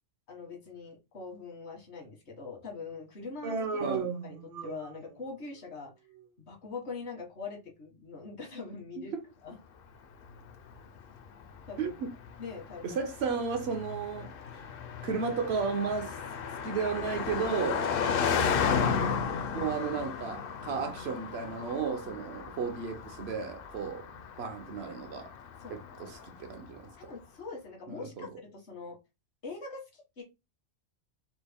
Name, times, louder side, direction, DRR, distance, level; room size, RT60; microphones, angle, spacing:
voice 1, 0.3-4.0 4.2-5.9 6.5-9.1 9.4-9.6 11.7-11.9 12.4-13.0 22.2-22.3 25.6-25.8 27.0-29.0 29.4-30.2, left 4 dB, 85° left, 1.7 m, -43 dB
Human voice, 3.4-5.1, right 4 dB, 50° right, 0.5 m, -34 dB
Car passing by, 10.2-26.7, left 6 dB, 65° left, 0.7 m, -34 dB
voice 2, 11.8-12.1 12.8-14.3 15.0-16.1 16.6-17.9 19.5-24.1 24.4-25.3 25.7-26.9 27.9-28.3, right 5 dB, 70° right, 1.0 m, -33 dB
4.2 x 2.1 x 3.4 m
omnidirectional pair, 1.1 m